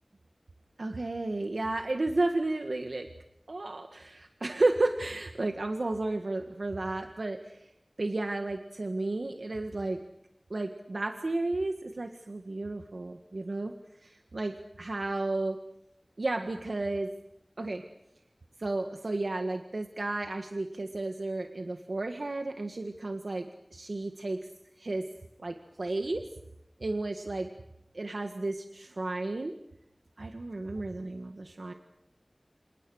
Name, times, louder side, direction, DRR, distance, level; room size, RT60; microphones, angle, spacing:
voice 1, 0.8-3.1 3.5-7.7 8.0-10.0 10.5-13.7 14.0-15.6 16.2-17.1 17.6-17.8 18.6-24.4 24.8-25.1 25.4-26.2 26.8-27.5 27.9-29.5 30.2-31.7, right 2 dB, 85° right, 6 dB, 1.7 m, -32 dB
29.0 x 27.5 x 6.4 m, 0.80 s
wide cardioid pair, 50°, 0 cm